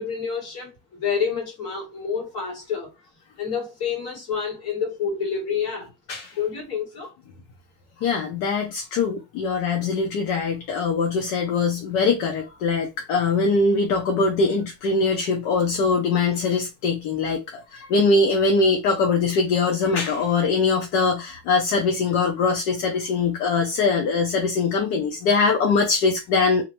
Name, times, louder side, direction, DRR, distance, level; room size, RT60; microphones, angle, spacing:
voice 1, 0.0-2.9 3.4-5.9 6.4-7.1, left 6 dB, 35° left, 1.2 m, -28 dB
voice 2, 8.0-26.6, left 4 dB, 50° left, 0.5 m, -22 dB
2.4 x 2.1 x 2.9 m
cardioid pair, 180°, 45 cm